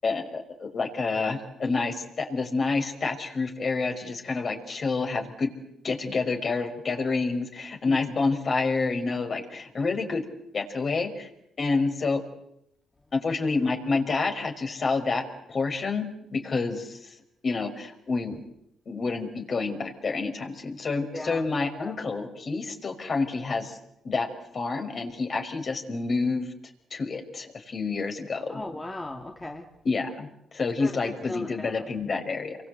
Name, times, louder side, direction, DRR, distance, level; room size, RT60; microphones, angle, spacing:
voice 1, 0.0-5.5 5.8-10.2 10.5-11.3 11.6-12.2 13.1-15.2 15.5-17.1 17.4-18.4 18.9-23.8 24.0-24.3 24.5-26.5 26.9-28.6 29.8-32.6, left 4 dB, 45° left, 4 dB, 5.5 m, -28 dB
voice 2, 21.1-21.4 21.7-21.9 28.5-29.7 30.8-31.7, left 2 dB, 15° left, 2 dB, 2.6 m, -37 dB
29.5 x 23.5 x 8.1 m, 0.79 s
cardioid pair, 90°, 0 cm